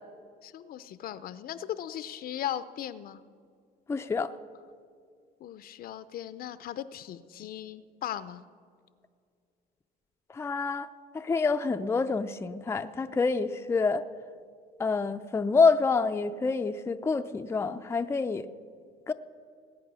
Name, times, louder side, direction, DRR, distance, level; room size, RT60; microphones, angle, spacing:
voice 1, 0.4-3.2 5.4-8.4, left 11 dB, 60° left, 0.6 m, -38 dB
voice 2, 3.9-4.3 10.3-14.0 14.8-18.5 19.1-19.2, left 4 dB, 15° left, 0.5 m, -27 dB
19.5 x 8.8 x 6.2 m
cardioid pair, 110°, 17 cm